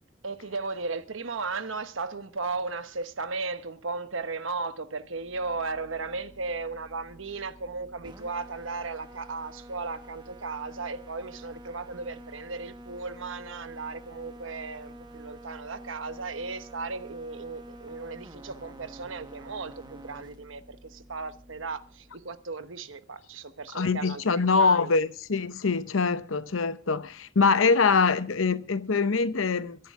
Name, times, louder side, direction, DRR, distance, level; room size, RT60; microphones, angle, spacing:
voice 1, 0.2-24.9 27.8-27.9, right 4 dB, 75° right, 1.1 m, -36 dB
sound 1, 5.1-22.3, right 1 dB, 20° right, 1.4 m, -48 dB
voice 2, 23.7-29.8, left 4 dB, 85° left, 0.8 m, -24 dB
23.0 x 11.0 x 3.6 m
head